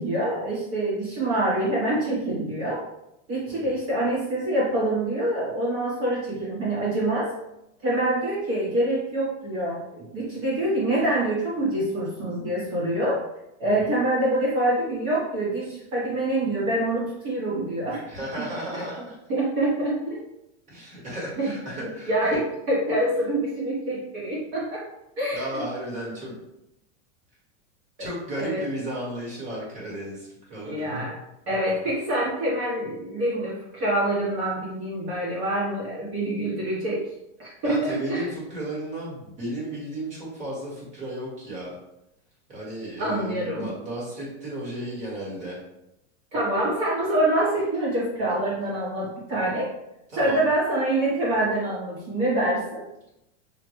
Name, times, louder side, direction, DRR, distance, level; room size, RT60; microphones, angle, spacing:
voice 1, 0.0-2.8 3.3-7.3 7.8-13.2 13.6-18.0 18.7-18.8 19.3-20.2 21.4-21.5 22.1-24.9 25.2-25.6 28.4-28.6 30.6-31.2 31.5-37.0 37.4-38.3 43.0-43.7 46.3-49.7 50.1-52.8, right 1 dB, 40° right, -6 dB, 1.2 m, -26 dB
voice 2, 18.1-19.2 20.7-22.4 25.3-26.4 28.0-31.1 37.6-41.7 42.5-45.6 50.1-50.5, right 1 dB, 20° right, -6 dB, 1.4 m, -34 dB
5.6 x 2.2 x 3.1 m, 0.85 s
supercardioid pair, 160°, 35 cm